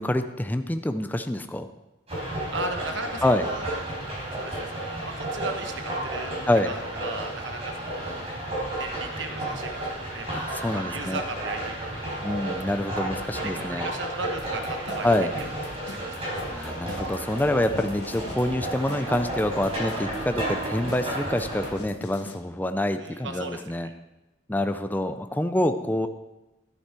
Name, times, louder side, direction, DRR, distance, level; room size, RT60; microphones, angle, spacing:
voice 1, 0.0-1.7 3.2-3.4 6.5-6.7 10.3-11.2 12.2-13.9 15.0-15.3 16.5-23.9 24.5-26.1, left 1 dB, 10° left, 8 dB, 0.4 m, -26 dB
sound 1, 2.1-21.7, right 1 dB, 35° right, 4.9 m, -32 dB
voice 2, 2.5-3.7 4.3-8.2 8.8-12.2 13.4-15.5 15.8-16.3 23.0-23.9, right 2 dB, 80° right, 6 dB, 1.2 m, -37 dB
sound 2, 14.4-22.4, left 2 dB, 65° left, 1.3 m, -43 dB
11.0 x 10.0 x 4.5 m, 0.97 s
head